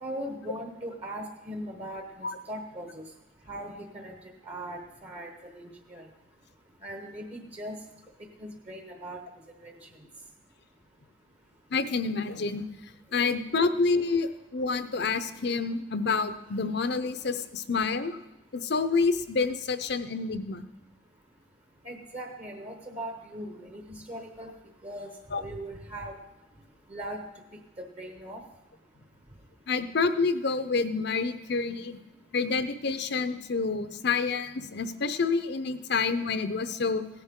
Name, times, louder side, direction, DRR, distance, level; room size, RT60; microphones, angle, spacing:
voice 1, 0.0-3.0 3.5-4.1 4.4-6.0 6.8-7.8 8.4-9.2 9.6-9.7 21.8-24.5 24.8-26.2 26.9-27.2 27.8-28.4, right 1 dB, 35° right, 3 dB, 1.1 m, -39 dB
voice 2, 11.7-12.6 13.1-18.2 18.5-20.6 25.3-25.4 29.7-32.0 32.3-37.0, left 4 dB, 60° left, 11 dB, 0.7 m, -28 dB
17.0 x 10.5 x 3.8 m, 1.0 s
head